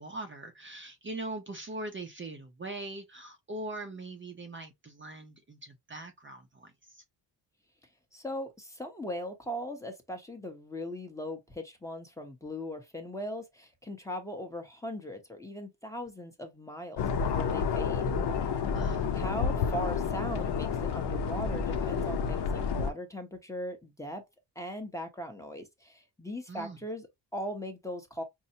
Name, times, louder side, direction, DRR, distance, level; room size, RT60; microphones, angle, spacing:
voice 1, 0.0-7.0 18.7-19.1 26.5-26.8, right 2 dB, 25° right, 0.7 m, -41 dB
voice 2, 8.1-18.1 19.1-24.2 24.6-28.2, equal, 5° left, 0.9 m, -39 dB
sound 1, 17.0-22.9, left 6 dB, 70° left, 0.8 m, -30 dB
5.5 x 2.1 x 2.7 m
cardioid pair, 120°, 43 cm